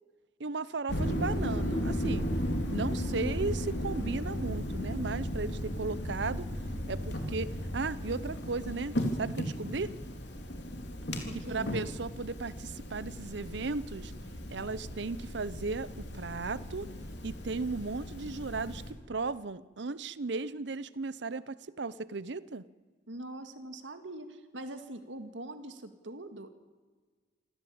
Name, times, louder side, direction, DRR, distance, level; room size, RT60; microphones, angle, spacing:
voice 1, 0.4-2.3 2.7-6.5 6.9-9.9 11.5-14.1 14.5-16.9 17.2-22.6, right 3 dB, 70° right, 17 dB, 0.8 m, -36 dB
sound 1, 0.9-18.9, equal, 65° left, 3.7 m, -35 dB
voice 2, 11.3-11.7 23.1-26.5, right 1 dB, 85° right, 9 dB, 2.1 m, -43 dB
27.0 x 16.0 x 8.7 m, 1.5 s
head